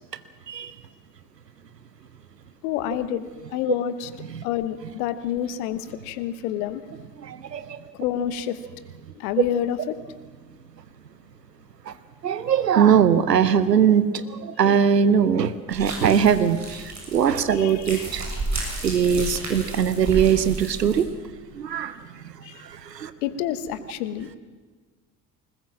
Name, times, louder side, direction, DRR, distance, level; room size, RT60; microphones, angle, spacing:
voice 1, 2.6-4.1 4.4-6.8 7.9-8.6 9.1-10.0 17.5-18.1 22.4-22.6 23.2-24.4, left 10 dB, 70° left, 14 dB, 1.3 m, -28 dB
voice 2, 7.2-7.8 11.9-12.0 12.2-18.3 18.8-21.1 21.6-22.0 22.6-23.1, right 8 dB, 90° right, 14 dB, 0.7 m, -21 dB
sound 1, 15.7-21.0, right 2 dB, 35° right, 7.3 m, -32 dB
20.5 x 20.0 x 7.5 m, 1.4 s
figure-of-eight pair, 50°, 47 cm